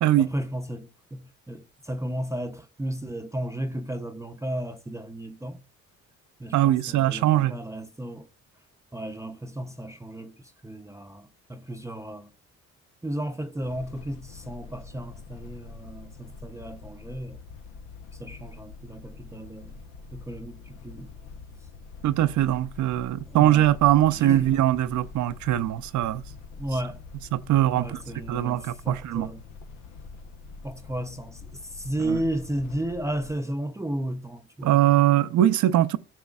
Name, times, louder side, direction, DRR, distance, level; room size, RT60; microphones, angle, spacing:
voice 1, 0.2-5.6 6.4-8.3 8.9-12.3 13.0-17.4 18.2-19.8 20.1-21.1 23.3-23.6 24.2-24.6 26.6-27.0 27.8-29.4 30.6-31.4 31.7-35.0, right 1 dB, 10° right, 0.6 m, -34 dB
voice 2, 6.5-7.5 22.0-26.2 27.3-28.0 28.3-29.3 32.0-32.2 34.6-36.0, right 13 dB, 70° right, 0.6 m, -21 dB
sound 1, 13.6-33.3, left 4 dB, 90° left, 0.9 m, -45 dB
14.5 x 6.2 x 2.3 m
cardioid pair, 90°, 30 cm